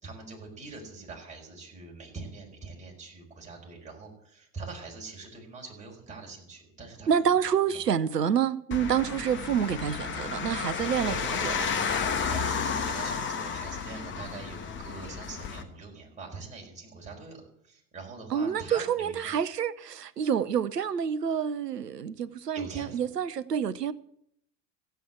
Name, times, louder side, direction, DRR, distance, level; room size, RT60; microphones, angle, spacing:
voice 1, 0.0-7.8 11.0-11.2 12.3-19.3 22.5-23.0, right 3 dB, 15° right, 5.0 m, -43 dB
voice 2, 7.1-11.7 18.3-23.9, right 8 dB, 80° right, 0.8 m, -28 dB
sound 1, 8.7-15.6, left 6 dB, 25° left, 1.3 m, -32 dB
15.5 x 8.0 x 8.2 m
figure-of-eight pair, 80°, 47 cm